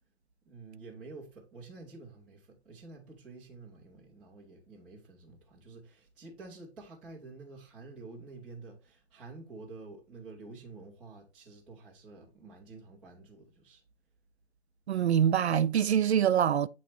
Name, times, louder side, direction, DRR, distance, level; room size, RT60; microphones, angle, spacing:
voice 1, 0.5-13.8, right 3 dB, 5° right, 0.4 m, -49 dB
voice 2, 14.9-16.7, right 9 dB, 70° right, 0.5 m, -25 dB
8.0 x 3.1 x 4.3 m
figure-of-eight pair, 140°, 33 cm